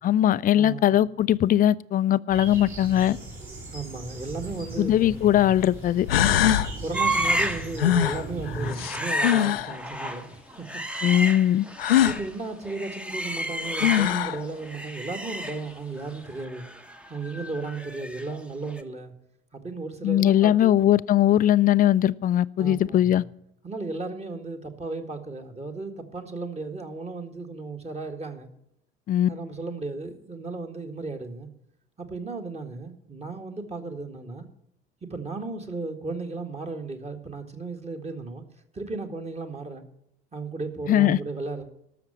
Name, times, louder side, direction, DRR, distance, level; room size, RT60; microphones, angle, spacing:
voice 1, 0.0-3.2 4.8-6.1 11.0-11.7 20.0-23.2 29.1-29.3 40.9-41.2, left 12 dB, 30° left, 0.4 m, -20 dB
voice 2, 0.5-1.0 3.7-5.2 6.8-10.7 12.0-16.6 17.1-19.1 19.5-21.0 22.6-23.2 23.6-28.5 29.3-31.5 32.0-34.5 35.0-38.4 38.7-39.8 40.3-41.6, right 3 dB, 20° right, 1.8 m, -35 dB
sound 1, 2.3-8.7, right 2 dB, 45° right, 4.8 m, -38 dB
sound 2, 4.6-4.7 5.6-5.7 6.1-6.7 7.8-9.7 11.8-12.2 13.4-13.5 13.8-14.4, left 11 dB, 80° left, 0.5 m, -22 dB
sound 3, 6.9-7.7 8.0-8.2 8.6-12.3 12.6-14.3 14.6-18.4 18.6-18.8, right 1 dB, 5° right, 1.0 m, -31 dB
13.0 x 6.7 x 8.8 m
figure-of-eight pair, 55°, 29 cm